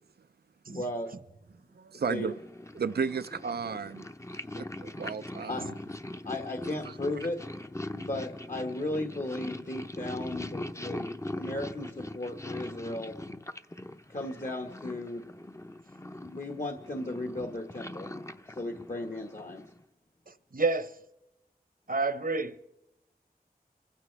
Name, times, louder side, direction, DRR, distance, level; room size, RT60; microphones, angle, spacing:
voice 1, 0.7-1.1 1.9-2.3 5.5-5.7 6.2-7.4 7.9-11.1 11.4-13.1 14.1-15.3 16.2-18.1 18.5-19.6, left 1 dB, 50° left, 1.5 m, -35 dB
voice 2, 1.8-2.4 2.8-4.1 4.6-5.7 6.9-7.0, right 5 dB, 80° right, 0.5 m, -33 dB
Purr, 2.2-19.8, left 1 dB, 20° left, 0.7 m, -41 dB
voice 3, 20.5-20.9 21.9-22.5, right 3 dB, 60° right, 0.9 m, -28 dB
26.0 x 15.5 x 3.4 m
wide cardioid pair, 45°, 16 cm